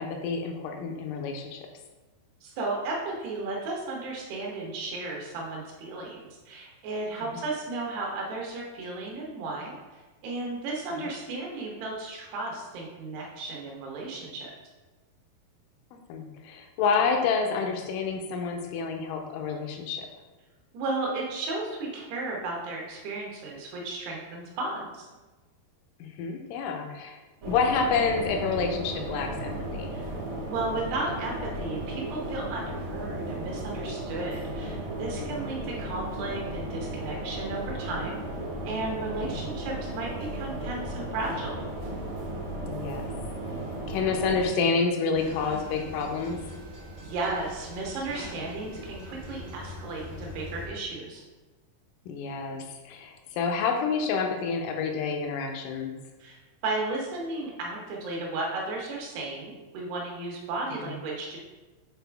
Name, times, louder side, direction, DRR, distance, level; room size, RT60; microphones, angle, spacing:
voice 1, 0.0-1.6 7.3-7.4 11.0-11.1 16.1-20.1 26.0-27.2 27.5-29.9 35.0-35.4 39.2-39.4 42.7-43.1 43.9-46.4 52.1-55.9 60.8-60.9, left 5 dB, 85° left, 3 dB, 1.9 m, -29 dB
voice 2, 2.4-9.7 10.2-14.5 20.7-25.1 29.9-30.1 30.4-38.2 38.6-41.7 47.0-51.2 56.2-56.4 56.6-61.4, right 2 dB, 80° right, -1 dB, 3.2 m, -34 dB
sound 1, 27.4-44.5, right 1 dB, 60° right, 1.2 m, -35 dB
sound 2, 45.1-50.7, equal, 20° right, 0.5 m, -42 dB
8.0 x 4.3 x 3.4 m, 1.2 s
omnidirectional pair, 4.7 m